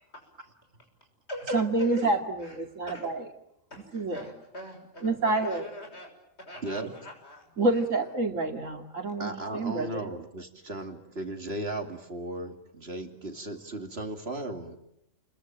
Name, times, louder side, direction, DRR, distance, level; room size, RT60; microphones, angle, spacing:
voice 1, 1.4-3.3 3.7-4.3 5.0-5.7 6.8-7.0 7.6-10.1, right 2 dB, 80° right, 5 dB, 3.0 m, -28 dB
voice 2, 3.7-6.1 6.4-7.4 7.7-8.1, left 1 dB, 55° left, 3 dB, 6.9 m, -42 dB
voice 3, 9.2-14.8, right 1 dB, 50° right, 5 dB, 2.8 m, -36 dB
30.0 x 22.0 x 9.1 m, 0.80 s
omnidirectional pair, 1.3 m